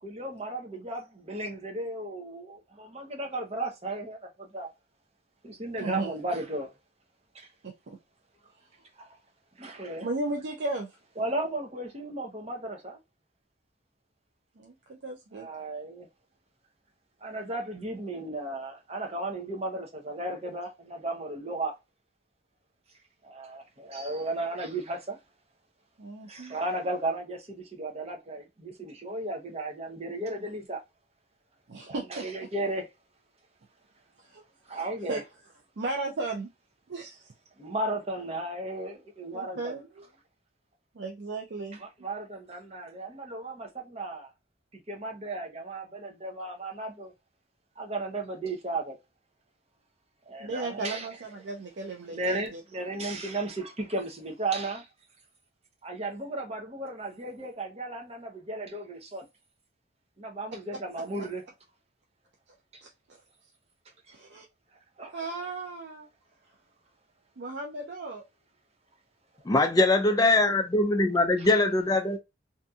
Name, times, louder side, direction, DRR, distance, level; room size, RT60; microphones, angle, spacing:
voice 1, 0.0-4.7 5.4-6.7 7.3-7.5 9.0-9.1 9.6-10.1 11.2-13.0 15.3-16.1 17.2-21.7 23.2-25.2 26.3-30.8 31.9-32.9 34.7-35.2 37.6-39.8 41.8-44.3 44.9-47.1 47.8-49.0 50.3-51.1 52.1-54.9 55.8-59.3 60.2-61.4 62.7-62.8 65.0-65.2 71.4-71.5, right 2 dB, 35° right, 0.7 m, -35 dB
voice 2, 5.8-6.1 7.6-8.0 10.0-11.0 14.6-15.5 26.0-26.6 31.7-32.2 34.2-34.4 34.7-35.2 35.8-36.5 36.9-37.3 39.3-40.1 40.9-42.1 50.4-52.6 60.9-61.0 62.8-62.9 64.1-64.4 65.1-66.1 67.4-68.2, right 2 dB, 65° right, 0.5 m, -36 dB
voice 3, 69.5-72.2, left 2 dB, 20° left, 0.4 m, -22 dB
2.7 x 2.6 x 2.3 m
head